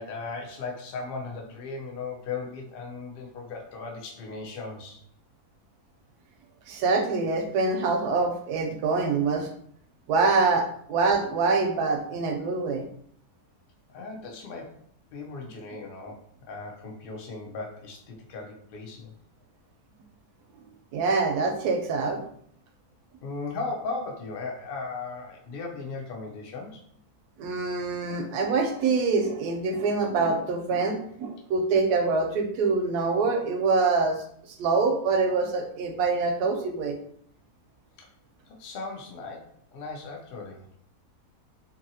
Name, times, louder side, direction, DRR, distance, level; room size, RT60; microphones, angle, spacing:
voice 1, 0.0-5.0 13.9-14.8 15.1-19.1 23.2-26.8 38.0-38.1 38.5-40.7, left 4 dB, 60° left, 0 dB, 0.6 m, -37 dB
voice 2, 6.7-9.5 10.1-12.9 20.9-22.2 27.4-34.2 34.6-37.0, right 4 dB, 85° right, 4 dB, 1.1 m, -25 dB
2.7 x 2.7 x 2.7 m, 0.64 s
omnidirectional pair, 1.6 m